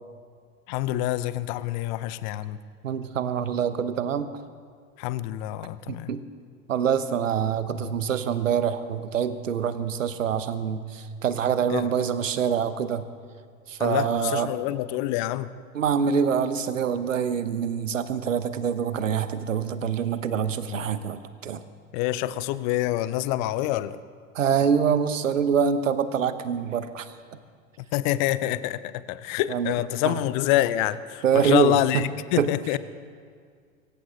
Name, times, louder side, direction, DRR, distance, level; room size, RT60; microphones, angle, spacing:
voice 1, 0.7-2.6 5.0-6.1 11.7-11.9 13.8-15.5 21.9-24.0 27.8-32.8, left 14 dB, 35° left, 0.6 m, -26 dB
voice 2, 2.8-4.3 5.9-6.2 6.7-13.0 13.7-14.5 15.7-21.6 24.3-27.1 29.5-29.7 30.0-30.2 31.2-32.1 32.4-32.5, right 7 dB, 65° right, 1.1 m, -25 dB
24.0 x 14.5 x 3.7 m
figure-of-eight pair, 85°, 41 cm